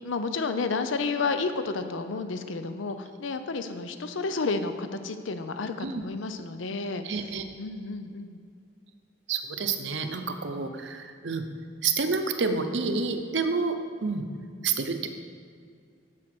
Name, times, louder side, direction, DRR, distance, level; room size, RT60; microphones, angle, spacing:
voice 1, 0.0-7.0 7.6-8.5, left 4 dB, 85° left, 9 dB, 0.6 m, -31 dB
voice 2, 7.0-7.4 9.3-11.4 11.8-14.2 14.6-15.1, right 4 dB, 70° right, 7 dB, 0.7 m, -29 dB
7.9 x 7.5 x 6.0 m, 2.3 s
head